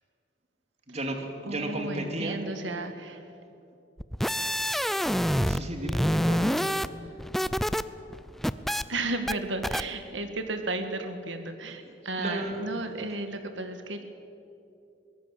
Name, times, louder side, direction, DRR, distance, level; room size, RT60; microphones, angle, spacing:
voice 1, 0.9-2.4 5.4-6.6 11.9-12.6, right 1 dB, 35° right, 3 dB, 2.5 m, -34 dB
voice 2, 1.4-3.2 8.9-14.0, right 2 dB, 90° right, 7 dB, 1.7 m, -34 dB
sound 1, 4.0-5.6 5.9-7.8 8.1-8.8 9.3-9.4 9.6-9.8, equal, ahead, 0.5 m, -26 dB
22.5 x 19.0 x 7.5 m, 2.7 s
head